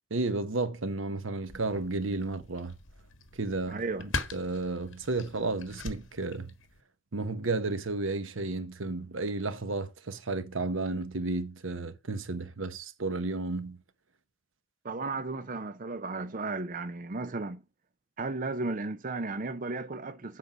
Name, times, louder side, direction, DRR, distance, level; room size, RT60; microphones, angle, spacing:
voice 1, 0.1-2.8 3.4-6.5 7.1-13.8, right 3 dB, 80° right, 1.0 m, -32 dB
sound 1, 1.4-6.8, left 3 dB, 75° left, 1.5 m, -41 dB
voice 2, 3.7-4.1 14.8-17.6 18.2-20.4, right 3 dB, 40° right, 0.6 m, -34 dB
8.0 x 5.4 x 6.0 m
head